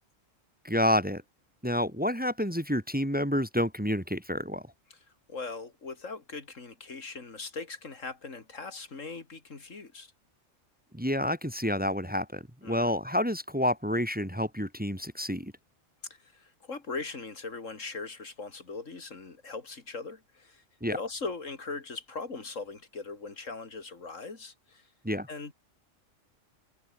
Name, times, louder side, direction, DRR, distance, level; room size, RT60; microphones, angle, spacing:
voice 1, 0.6-1.2 1.6-4.6 10.9-15.5 20.8-21.0 25.0-25.3, left 1 dB, 5° right, 2.0 m, -29 dB
voice 2, 5.3-10.1 12.6-12.9 16.1-20.6 20.9-24.9 25.3-25.5, left 4 dB, 80° left, 3.1 m, -40 dB
omnidirectional pair, 1.3 m